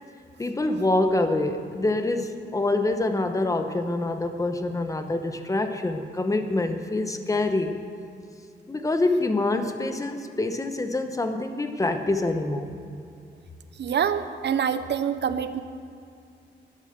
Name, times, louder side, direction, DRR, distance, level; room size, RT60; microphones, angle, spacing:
voice 1, 0.4-7.8 8.7-12.7, left 2 dB, 15° left, 7 dB, 1.0 m, -26 dB
voice 2, 13.8-15.6, right 8 dB, 65° right, 11 dB, 0.7 m, -26 dB
12.0 x 11.5 x 6.7 m, 2.5 s
wide cardioid pair, 135°, 19 cm